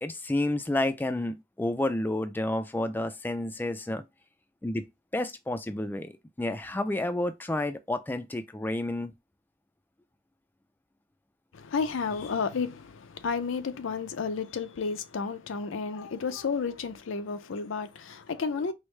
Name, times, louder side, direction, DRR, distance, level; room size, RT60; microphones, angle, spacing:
voice 1, 0.0-4.0 4.6-4.9 5.1-9.1, left 1 dB, 10° left, 0.3 m, -30 dB
voice 2, 11.5-18.7, left 5 dB, 80° left, 0.5 m, -32 dB
4.6 x 2.0 x 3.2 m
head